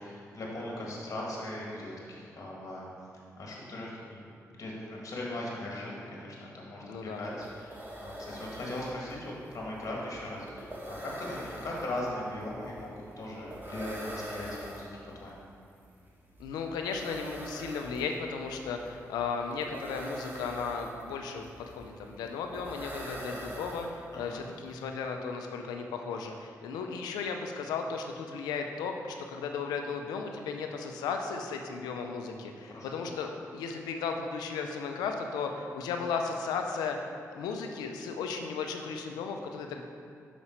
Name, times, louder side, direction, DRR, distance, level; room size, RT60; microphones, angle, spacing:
voice 1, 0.0-2.9 3.4-14.9 15.1-15.5 24.1-24.5 32.6-33.1, left 1 dB, 55° left, -3 dB, 1.5 m, -39 dB
voice 2, 6.8-7.2 16.4-39.8, left 5 dB, 90° left, 4 dB, 0.5 m, -35 dB
sound 1, 6.9-7.0 7.2-24.3, right 1 dB, 30° right, 1.4 m, -44 dB
5.5 x 5.0 x 4.4 m, 2.4 s
supercardioid pair, 45°, 7 cm